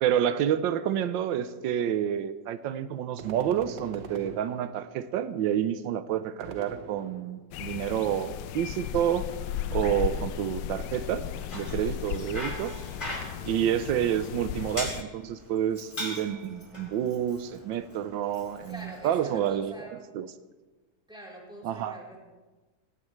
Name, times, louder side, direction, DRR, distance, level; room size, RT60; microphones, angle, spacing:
voice 1, 0.0-9.3 9.7-11.2 11.5-12.7 13.4-19.9 20.1-20.3 21.6-22.0, right 10 dB, 90° right, 12 dB, 1.4 m, -29 dB
sound 1, 3.2-5.1 6.4-7.6 9.8-10.8, right 7 dB, 70° right, 1.5 m, -44 dB
sound 2, 7.5-15.0, left 10 dB, 75° left, 1.2 m, -35 dB
Bicycle, 11.2-19.6, left 1 dB, 25° left, 4.5 m, -41 dB
voice 2, 18.7-20.1 21.1-22.2, equal, ahead, -4 dB, 3.7 m, -45 dB
18.0 x 18.0 x 3.2 m, 1.2 s
omnidirectional pair, 2.0 m